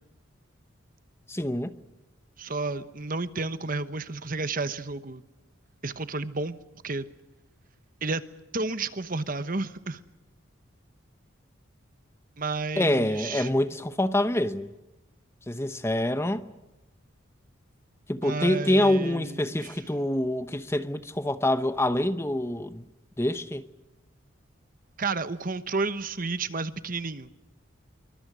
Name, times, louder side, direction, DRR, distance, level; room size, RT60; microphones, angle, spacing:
voice 1, 1.3-1.7 12.8-14.7 15.5-16.5 18.1-22.8 23.2-23.6, left 1 dB, 10° left, 0.9 m, -26 dB
voice 2, 2.4-5.2 5.8-6.6 6.8-7.1 8.0-8.2 8.5-10.0 12.4-13.5 18.2-19.7 25.0-27.3, right 3 dB, 40° right, 1.1 m, -31 dB
26.0 x 24.5 x 6.3 m
head